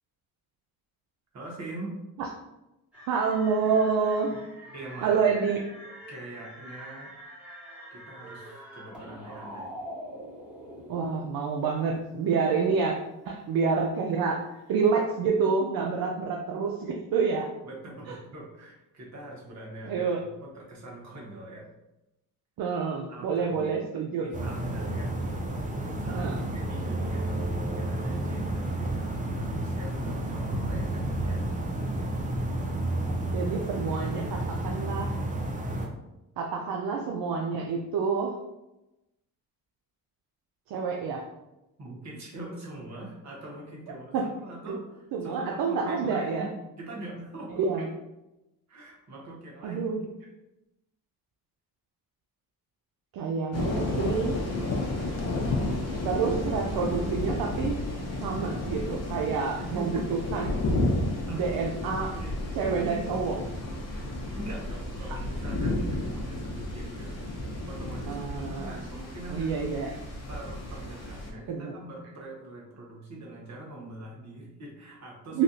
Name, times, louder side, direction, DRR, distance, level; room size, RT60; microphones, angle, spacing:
voice 1, 1.3-2.0 4.7-5.2 6.1-7.1 7.9-9.8 17.6-21.7 23.1-23.7 24.2-25.2 25.9-31.6 41.8-47.6 48.7-49.8 59.7-60.1 61.3-61.6 61.8-62.5 63.9-64.0 64.3-67.2 67.7-68.2 68.5-69.7 70.3-75.4, right 1 dB, 50° right, -3 dB, 1.2 m, -43 dB
sound 1, 2.9-11.3, equal, 5° right, 1.2 m, -44 dB
voice 2, 3.1-4.3 5.0-5.6 10.9-12.9 13.3-17.5 18.1-18.2 19.8-20.2 22.6-24.3 26.1-26.4 33.3-35.2 36.4-38.4 40.7-41.3 44.1-44.3 44.7-44.8 45.1-46.5 47.5-47.9 49.6-50.1 53.1-54.4 56.0-57.9 58.2-60.6 61.3-62.1 62.6-63.5 65.1-65.2 68.1-68.9 69.3-70.0 71.5-71.9 75.3-75.4, right 5 dB, 70° right, 0 dB, 0.5 m, -28 dB
sound 2, 24.3-35.9, right 1 dB, 20° right, 0.5 m, -31 dB
sound 3, 53.5-71.3, left 2 dB, 45° left, 0.7 m, -32 dB
3.2 x 2.4 x 2.7 m, 0.94 s
cardioid pair, 75°, 37 cm